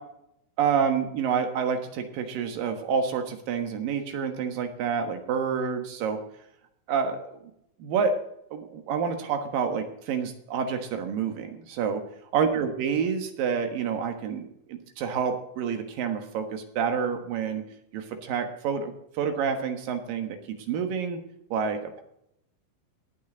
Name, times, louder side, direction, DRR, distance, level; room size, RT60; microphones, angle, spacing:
voice 1, 0.6-6.2 6.9-7.4 7.8-8.2 8.5-12.0 12.3-17.6 17.9-21.2 21.5-22.0, right 6 dB, 75° right, 7 dB, 3.0 m, -28 dB
17.5 x 9.4 x 3.9 m, 0.77 s
omnidirectional pair, 4.1 m